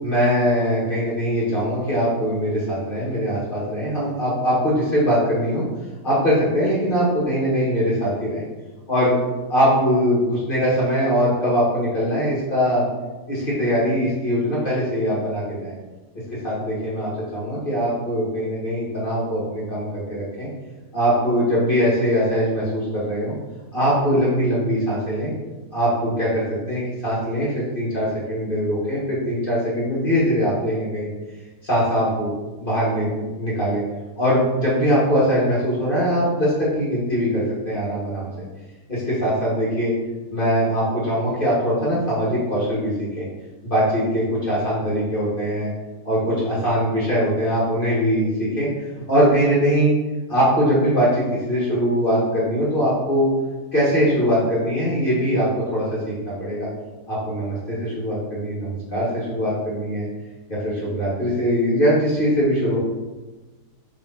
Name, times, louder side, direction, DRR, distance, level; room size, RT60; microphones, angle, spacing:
voice 1, 0.0-5.6 6.0-8.5 8.9-9.2 9.5-12.9 13.3-15.7 16.4-20.5 20.9-23.3 23.7-25.3 25.7-31.1 31.6-32.3 32.6-33.8 34.2-38.3 38.9-39.9 40.3-43.3 43.6-45.7 46.0-50.0 50.3-53.3 53.7-56.7 57.1-60.1 60.5-62.8, equal, 30° left, -8 dB, 2.0 m, -21 dB
6.2 x 4.2 x 4.2 m, 1.2 s
omnidirectional pair, 1.9 m